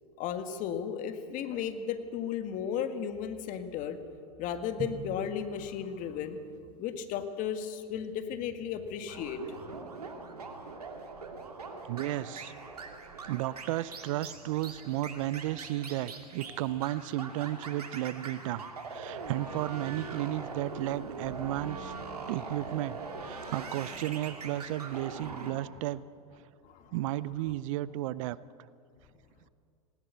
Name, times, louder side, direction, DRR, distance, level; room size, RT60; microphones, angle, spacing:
voice 1, 0.2-4.0 4.4-6.4 6.8-9.8 26.6-27.0, left 8 dB, 45° left, 9 dB, 1.8 m, -35 dB
Drum, 4.8-7.0, right 4 dB, 25° right, 1.2 m, -44 dB
sound 1, 9.1-25.5, right 4 dB, 85° right, 2.6 m, -42 dB
voice 2, 11.9-12.5 13.3-18.6 18.9-21.9 22.3-26.0 26.9-28.4, right 15 dB, 60° right, 19 dB, 0.6 m, -33 dB
19.0 x 18.5 x 8.2 m, 2.3 s
hypercardioid pair, 95°, 19 cm